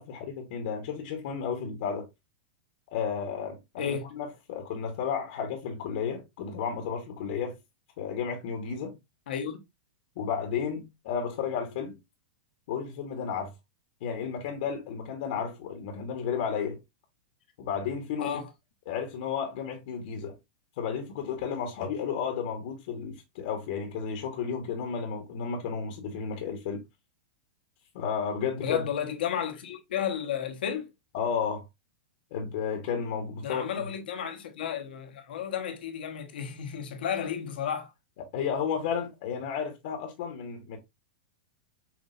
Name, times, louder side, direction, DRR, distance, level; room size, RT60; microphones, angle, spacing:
voice 1, 0.0-2.1 2.9-7.6 8.0-8.9 10.2-12.0 12.7-13.5 14.0-16.8 17.6-18.4 18.9-20.4 20.8-26.8 27.9-28.8 31.1-31.6 32.3-33.7 38.3-40.8, left 6 dB, 60° left, 1.3 m, -32 dB
voice 2, 3.8-4.1 9.3-9.6 18.2-18.5 28.6-30.9 33.4-37.9, left 8 dB, 80° left, 1.2 m, -32 dB
6.1 x 2.6 x 2.6 m
supercardioid pair, 145°, 5 cm